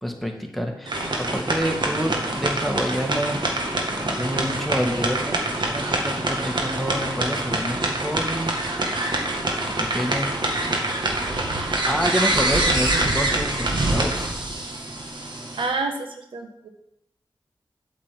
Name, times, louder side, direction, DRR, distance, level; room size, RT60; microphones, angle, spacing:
voice 1, 0.0-3.5 3.9-8.6 9.8-10.3 11.8-14.3, equal, ahead, 2 dB, 1.9 m, -28 dB
sound 1, 0.9-15.7, right 2 dB, 65° right, 1.9 m, -25 dB
voice 2, 15.5-16.7, right 3 dB, 90° right, 4 dB, 1.2 m, -28 dB
8.4 x 6.2 x 7.6 m, 0.80 s
cardioid pair, 50°, 9 cm